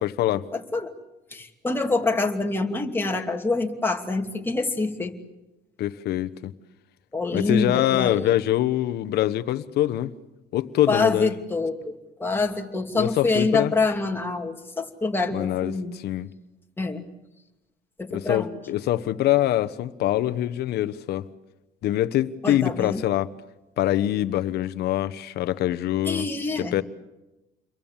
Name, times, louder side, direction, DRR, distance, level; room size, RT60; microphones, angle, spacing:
voice 1, 0.0-0.5 5.8-6.5 7.3-10.1 10.5-11.3 12.9-13.7 15.3-16.3 18.1-21.2 21.8-23.3 23.8-26.3 26.6-26.8, left 13 dB, 75° left, 1.2 m, -24 dB
voice 2, 0.5-0.9 1.3-5.2 7.1-8.3 10.9-11.9 12.2-16.0 16.8-17.0 18.0-18.5 22.4-23.0 26.1-26.8, left 3 dB, 15° left, 2.7 m, -26 dB
29.5 x 23.0 x 7.4 m
cardioid pair, 110°, 17 cm